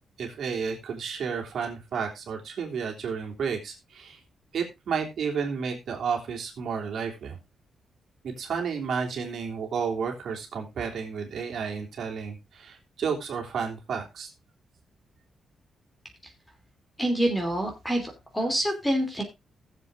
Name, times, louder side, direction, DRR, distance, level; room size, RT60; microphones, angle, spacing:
voice 1, 0.2-4.2 4.5-7.4 8.2-14.3, right 6 dB, 60° right, 1 dB, 3.2 m, -32 dB
voice 2, 17.0-19.2, right 1 dB, 5° left, 4 dB, 3.1 m, -26 dB
19.0 x 7.5 x 2.6 m, 0.24 s
wide cardioid pair, 160°, 0 cm